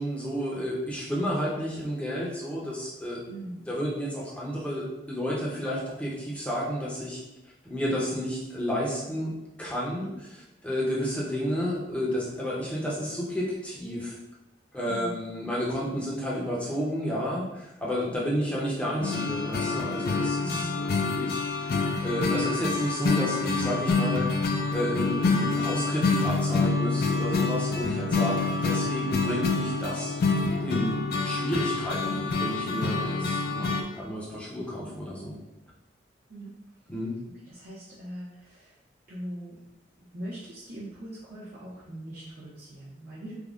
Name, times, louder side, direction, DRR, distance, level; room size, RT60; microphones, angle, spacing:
voice 1, 0.0-3.2 3.7-7.2 7.6-9.3 9.6-14.2 14.7-24.3 24.7-28.4 28.6-30.1 30.6-35.4 36.9-37.1, equal, 10° left, -6 dB, 0.6 m, -31 dB
voice 2, 3.3-3.7 14.8-15.2 20.3-21.0 27.9-28.1 33.0-33.7 36.3-36.5 37.5-38.8 39.1-39.6 40.1-43.3, right 1 dB, 50° right, -9 dB, 0.6 m, -40 dB
sound 1, 19.0-33.8, left 3 dB, 55° left, 0.3 m, -27 dB
3.4 x 2.0 x 2.4 m, 0.93 s
head